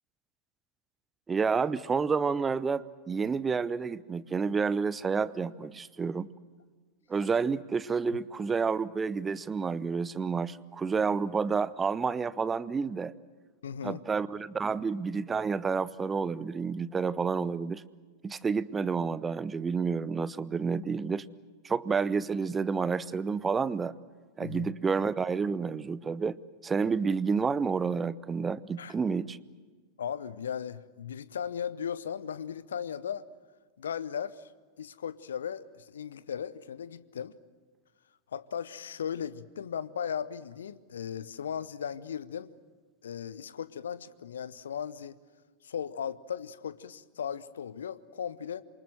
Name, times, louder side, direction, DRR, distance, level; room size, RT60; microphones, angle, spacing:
voice 1, 1.3-6.3 7.1-13.1 13.8-17.8 18.2-21.3 21.6-23.9 24.4-29.4, right 5 dB, 15° right, 20 dB, 0.7 m, -30 dB
voice 2, 13.6-14.0 24.4-24.7 28.8-28.9 30.0-33.3 33.8-34.5 34.8-37.3 38.3-42.5 43.0-45.2 45.6-48.6, left 8 dB, 65° left, 17 dB, 0.9 m, -37 dB
27.5 x 24.0 x 7.8 m, 1.4 s
figure-of-eight pair, 90°, 0 cm